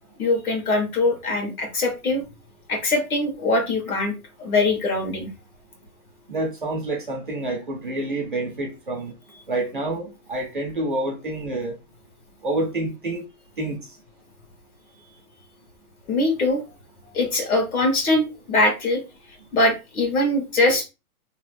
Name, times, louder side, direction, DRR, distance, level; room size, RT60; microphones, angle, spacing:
voice 1, 0.2-2.2 2.7-4.1 4.4-5.3 16.1-16.6 17.1-19.0 19.5-20.8, left 2 dB, 70° left, 1.4 m, -22 dB
voice 2, 6.3-9.1 9.5-11.7 12.4-13.2 13.6-13.8, right 2 dB, 35° right, 0.4 m, -28 dB
3.0 x 2.0 x 3.2 m
hypercardioid pair, 170°, 45 cm